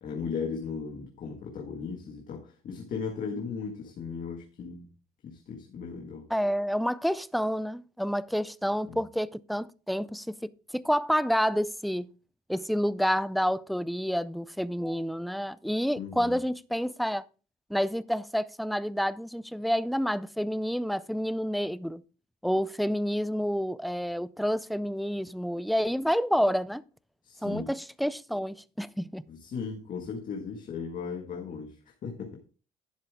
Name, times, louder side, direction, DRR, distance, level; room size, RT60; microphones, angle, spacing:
voice 1, 0.0-4.8 5.2-6.3 8.9-9.0 16.0-16.4 27.2-27.7 29.3-31.8 32.0-32.4, left 5 dB, 55° left, 1.8 m, -37 dB
voice 2, 6.3-12.1 12.5-17.2 17.7-22.0 22.4-26.8 27.4-29.2, equal, ahead, 0.4 m, -29 dB
11.0 x 7.4 x 3.6 m
cardioid pair, 110°, 17 cm